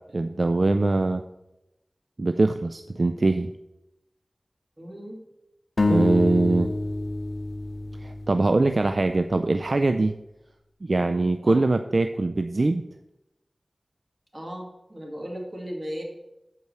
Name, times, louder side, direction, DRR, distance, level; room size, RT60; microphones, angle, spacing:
voice 1, 0.1-1.2 2.2-3.5 5.9-6.7 8.0-10.2 10.8-12.8, right 2 dB, 60° right, 8 dB, 0.4 m, -22 dB
voice 2, 4.8-5.2 11.4-11.6 14.3-16.0, equal, 30° right, 0 dB, 2.3 m, -36 dB
sound 1, 5.8-9.4, left 2 dB, 65° left, 0.6 m, -27 dB
8.3 x 4.6 x 6.8 m, 0.92 s
wide cardioid pair, 55°, 0 cm